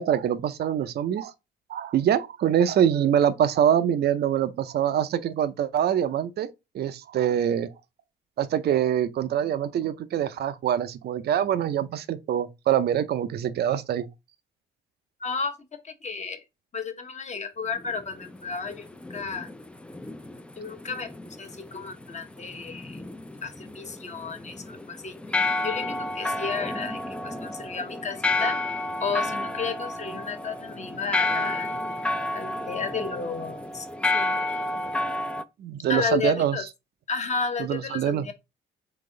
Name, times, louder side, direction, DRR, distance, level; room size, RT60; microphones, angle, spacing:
voice 1, 0.0-1.3 1.7-6.5 6.7-7.7 8.4-14.1 35.6-36.6 37.6-38.3, right 9 dB, 55° right, 0.5 m, -24 dB
voice 2, 15.2-16.4 16.7-19.5 20.6-21.1 21.4-23.0 23.4-25.2 25.6-28.6 29.0-31.7 32.3-33.9 34.1-34.5 35.9-36.6 37.1-38.3, left 5 dB, 35° left, 0.9 m, -32 dB
sound 1, 17.7-35.4, left 2 dB, 5° left, 0.3 m, -31 dB
3.9 x 2.8 x 3.7 m
cardioid pair, 90°, 20 cm